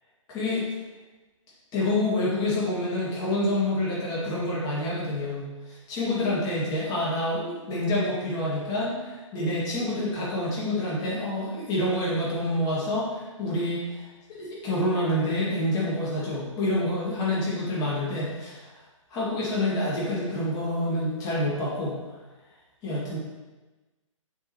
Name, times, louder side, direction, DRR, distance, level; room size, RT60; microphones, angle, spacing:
voice 1, 0.3-0.7 1.7-18.7 19.1-21.9 22.8-23.2, left 1 dB, 25° left, -6 dB, 2.0 m, -27 dB
6.9 x 4.9 x 2.9 m, 1.2 s
figure-of-eight pair, 125°, 17 cm